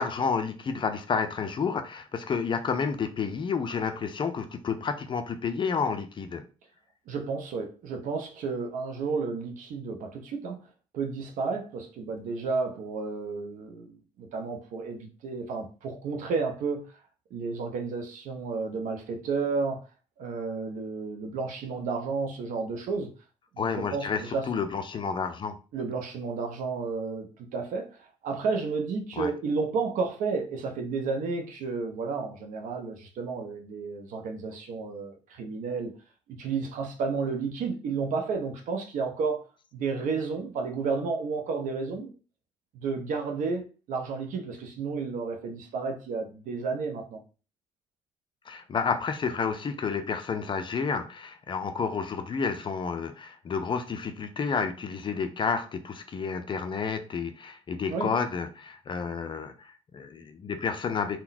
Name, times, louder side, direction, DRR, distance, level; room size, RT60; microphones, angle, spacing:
voice 1, 0.0-6.4 23.6-25.6 29.2-29.3 48.5-61.2, left 5 dB, 30° left, 0.4 m, -30 dB
voice 2, 7.1-10.6 10.9-16.9 17.3-19.8 20.2-23.1 23.5-24.5 25.7-27.3 27.5-35.9 36.3-39.4 39.7-42.1 42.7-47.2 57.9-58.1, right 4 dB, 55° right, 0.7 m, -32 dB
3.7 x 2.1 x 2.6 m
figure-of-eight pair, 45°, 16 cm